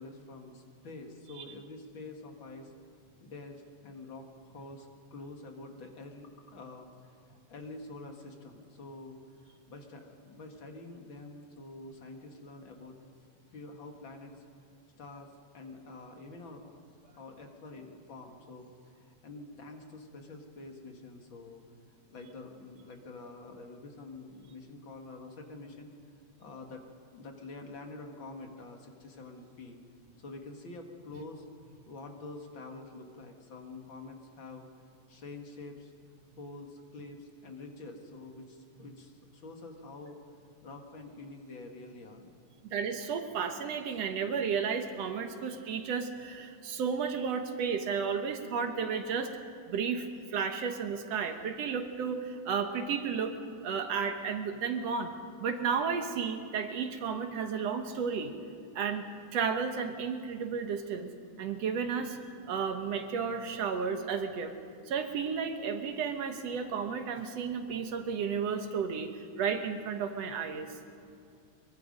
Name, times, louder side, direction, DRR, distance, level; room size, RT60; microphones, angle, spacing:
voice 1, 0.0-2.7 3.2-7.1 7.5-13.0 13.5-14.4 15.0-16.8 17.2-21.6 22.1-25.9 26.4-29.8 30.2-31.5 31.9-34.7 35.1-35.9 36.4-40.3 40.6-42.3, left 2 dB, 45° left, 3 dB, 2.3 m, -47 dB
voice 2, 42.7-49.3 49.7-53.4 53.6-55.1 55.4-58.3 58.8-61.1 61.4-62.2 62.5-64.5 64.9-69.1 69.4-70.7, right 6 dB, 65° right, 6 dB, 2.2 m, -33 dB
24.5 x 22.5 x 5.3 m, 2.4 s
omnidirectional pair, 3.3 m